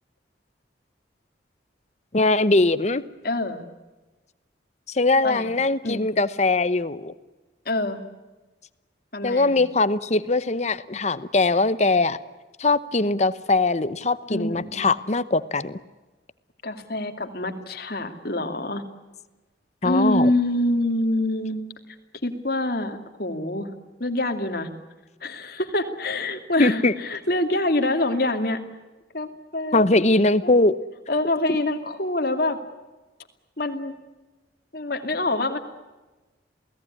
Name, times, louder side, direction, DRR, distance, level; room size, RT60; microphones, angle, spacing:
voice 1, 2.1-3.0 4.9-7.1 9.2-12.2 12.6-15.8 19.8-20.3 26.6-26.9 29.7-30.8, left 2 dB, 40° left, 15 dB, 0.9 m, -21 dB
voice 2, 3.2-3.7 5.2-5.5 5.8-6.0 7.7-8.0 9.1-9.6 14.3-15.0 16.6-18.8 19.8-21.6 22.2-23.7 24.0-24.7 25.2-28.6 29.1-30.1 30.4-30.5 31.1-32.6 33.6-33.9 34.7-35.6, left 1 dB, 55° left, 6 dB, 2.5 m, -26 dB
28.5 x 18.0 x 9.8 m, 1.2 s
head